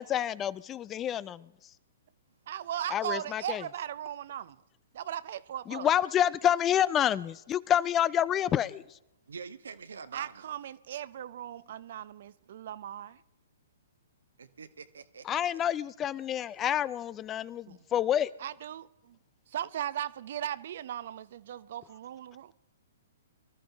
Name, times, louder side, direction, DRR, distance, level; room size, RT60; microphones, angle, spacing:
voice 1, 0.0-1.5 2.9-3.6 5.7-8.8 15.3-18.3, left 10 dB, 20° left, 0.4 m, -28 dB
voice 2, 2.5-4.6 4.9-5.9 10.1-13.2 17.7-17.8 18.4-19.2 19.5-22.5, right 10 dB, 55° right, 0.7 m, -38 dB
voice 3, 9.3-10.6 14.4-15.7, right 5 dB, 75° right, 1.1 m, -46 dB
24.0 x 13.0 x 3.5 m
hypercardioid pair, 125°, 0 cm